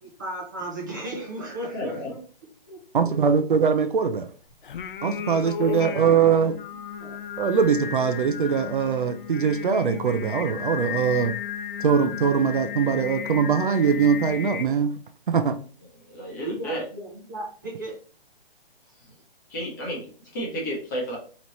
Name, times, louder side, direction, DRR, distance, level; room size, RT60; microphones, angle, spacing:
voice 1, 0.0-2.2 2.7-3.4 5.4-6.5 7.0-7.2 16.4-18.0, right 1 dB, 20° right, -2 dB, 0.7 m, -36 dB
voice 2, 1.7-2.1 16.1-16.8 19.5-21.2, equal, 20° left, -3 dB, 1.0 m, -32 dB
voice 3, 2.9-4.3 5.0-6.5 7.4-11.3 11.8-14.9 15.3-15.5, right 6 dB, 55° right, 8 dB, 0.5 m, -22 dB
Singing, 4.6-14.7, left 8 dB, 60° left, 0.4 m, -34 dB
4.1 x 3.0 x 3.0 m, 0.41 s
hypercardioid pair, 175°, 30 cm